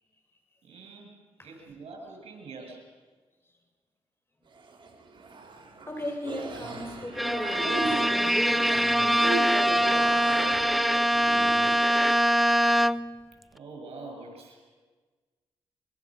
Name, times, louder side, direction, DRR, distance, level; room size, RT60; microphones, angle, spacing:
voice 1, 0.6-1.1 1.4-2.8 13.5-14.7, right 3 dB, 70° right, 3 dB, 7.1 m, -44 dB
sound 1, 4.5-11.8, right 3 dB, 50° right, 4.1 m, -37 dB
voice 2, 5.9-10.2, left 1 dB, 20° left, 2 dB, 7.2 m, -37 dB
Bowed string instrument, 7.2-13.2, equal, ahead, 0.6 m, -23 dB
24.5 x 23.0 x 6.4 m, 1.4 s
supercardioid pair, 55°, 11 cm